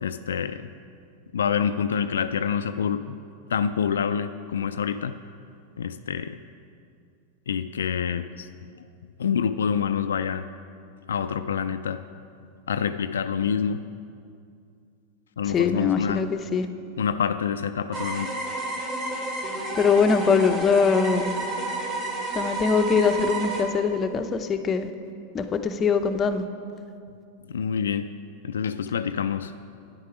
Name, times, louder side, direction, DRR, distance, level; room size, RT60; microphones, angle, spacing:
voice 1, 0.0-0.7 1.3-3.2 3.5-5.2 5.8-6.4 7.5-8.5 9.2-10.5 11.1-12.0 12.7-13.8 15.4-16.3 17.0-18.3 27.5-28.1 28.4-29.5, left 7 dB, 85° left, 9 dB, 0.3 m, -27 dB
voice 2, 15.5-16.7 19.7-21.3 22.4-24.9 25.3-26.4, left 5 dB, 25° left, 7 dB, 0.7 m, -22 dB
sound 1, 17.9-23.6, right 2 dB, 40° right, 2.5 m, -30 dB
9.7 x 8.4 x 4.9 m, 2.4 s
hypercardioid pair, 105°, 0 cm